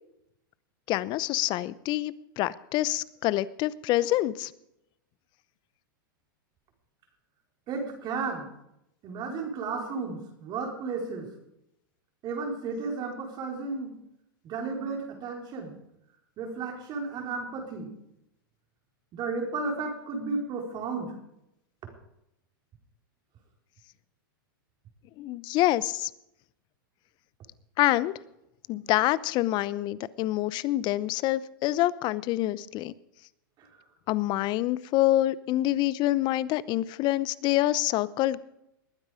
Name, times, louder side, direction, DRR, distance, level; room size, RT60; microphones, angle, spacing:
voice 1, 0.9-4.5 25.2-26.1 27.8-28.1 28.7-32.9 34.1-38.4, left 15 dB, 40° left, 19 dB, 0.7 m, -26 dB
voice 2, 7.7-8.5 9.0-11.3 12.2-14.0 14.4-15.7 16.4-17.9 19.1-21.2 33.6-33.7, right 4 dB, 40° right, 2 dB, 4.4 m, -33 dB
20.5 x 9.6 x 5.1 m, 0.82 s
hypercardioid pair, 115°, 12 cm